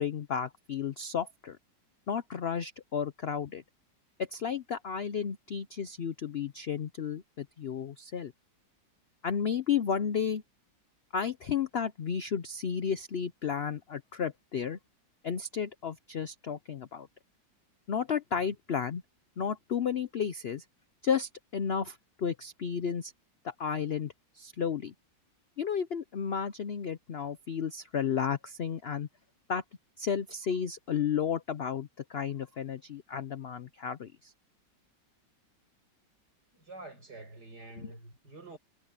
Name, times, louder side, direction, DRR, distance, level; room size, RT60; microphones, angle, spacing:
voice 1, 0.0-1.6 2.1-3.6 4.2-8.3 9.2-10.4 11.1-14.8 15.2-17.1 17.9-19.0 19.4-20.6 21.0-23.1 23.4-24.9 25.6-29.1 29.5-29.6 30.0-34.3 37.8-38.0, left 7 dB, 75° left, 0.5 m, -33 dB
voice 2, 36.5-38.6, right 2 dB, 60° right, 8.7 m, -47 dB
omnidirectional pair, 2.0 m